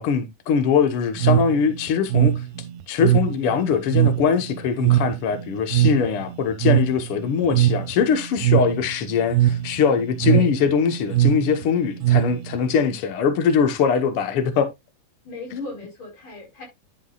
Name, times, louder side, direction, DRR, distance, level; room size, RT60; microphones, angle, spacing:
voice 1, 0.0-2.3 2.9-14.7 15.5-15.7, left 6 dB, 75° left, 1.2 m, -22 dB
sound 1, 1.2-12.8, right 12 dB, 80° right, 2.4 m, -22 dB
voice 2, 15.3-16.7, left 2 dB, 45° left, 5.3 m, -36 dB
11.0 x 7.4 x 2.4 m
omnidirectional pair, 4.4 m